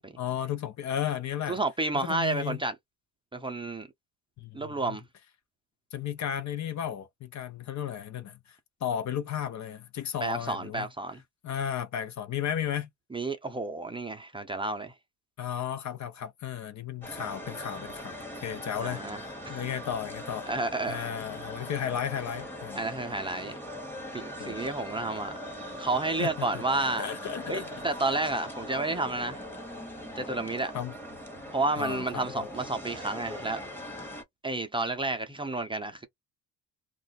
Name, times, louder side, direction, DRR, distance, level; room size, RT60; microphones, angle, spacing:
voice 1, 0.2-1.6 1.9-2.6 4.4-4.6 4.9-5.0 5.9-8.4 8.8-10.9 11.4-12.9 15.4-20.5 20.9-22.8 24.4-24.6 26.2-26.3 27.0-27.8 30.7-30.9 31.8-32.5, left 9 dB, 50° left, 0.6 m, -34 dB
voice 2, 1.5-2.7 3.3-3.9 4.5-5.0 10.2-11.2 13.1-14.9 18.8-19.2 19.5-19.6 20.5-21.1 22.8-23.5 24.1-25.3 25.8-27.1 27.5-29.4 30.2-30.7 31.5-33.6 34.4-36.1, right 2 dB, 15° right, 0.5 m, -31 dB
sound 1, 17.0-34.2, equal, 5° left, 1.2 m, -41 dB
2.4 x 2.2 x 4.0 m
cardioid pair, 110°, 38 cm